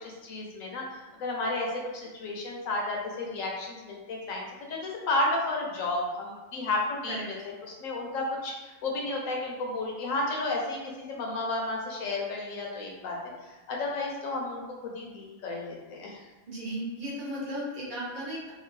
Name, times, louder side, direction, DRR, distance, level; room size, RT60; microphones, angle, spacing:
voice 1, 0.0-1.7 1.9-4.4 4.7-7.2 7.7-10.8 11.1-13.2 13.7-16.2, left 2 dB, 70° left, -1 dB, 0.9 m, -32 dB
voice 2, 7.0-7.5 16.5-18.5, equal, 40° right, -6 dB, 0.8 m, -35 dB
2.8 x 2.3 x 3.0 m, 1.2 s
omnidirectional pair, 1.5 m